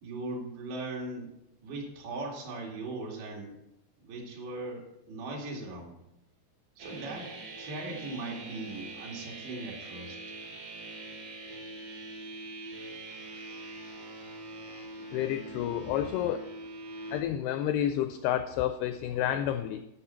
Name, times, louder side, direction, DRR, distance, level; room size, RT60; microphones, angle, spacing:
voice 1, 0.0-1.3 1.6-3.6 4.0-6.0 6.8-7.3 7.6-10.4 19.1-19.2, right 2 dB, 75° right, -2 dB, 4.4 m, -39 dB
sound 1, 6.8-17.2, right 2 dB, 60° right, 1.7 m, -43 dB
voice 2, 15.1-16.5 17.1-19.8, left 11 dB, 85° left, 9 dB, 2.3 m, -30 dB
14.0 x 6.6 x 4.4 m, 0.86 s
omnidirectional pair, 5.1 m